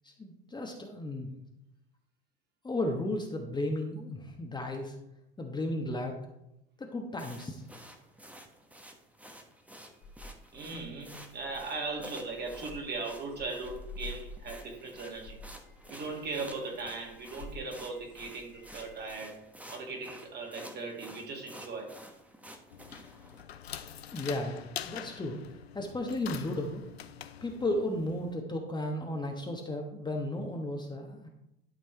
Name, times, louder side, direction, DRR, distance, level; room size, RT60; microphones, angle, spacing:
voice 1, 0.0-1.3 2.6-5.0 5.4-6.1 6.8-7.6 24.1-25.4 25.7-26.8 27.4-31.3, left 1 dB, 15° left, 1 dB, 1.3 m, -34 dB
sound 1, 7.2-23.4, equal, 5° right, 1.1 m, -51 dB
sound 2, 10.0-19.1, left 2 dB, 65° left, 2.9 m, -49 dB
voice 2, 10.5-15.4 15.9-19.4 19.7-22.0, right 3 dB, 35° right, 2 dB, 2.1 m, -38 dB
sound 3, 22.7-28.3, left 9 dB, 85° left, 0.6 m, -45 dB
12.0 x 5.2 x 3.4 m, 0.84 s
figure-of-eight pair, 75°, 30 cm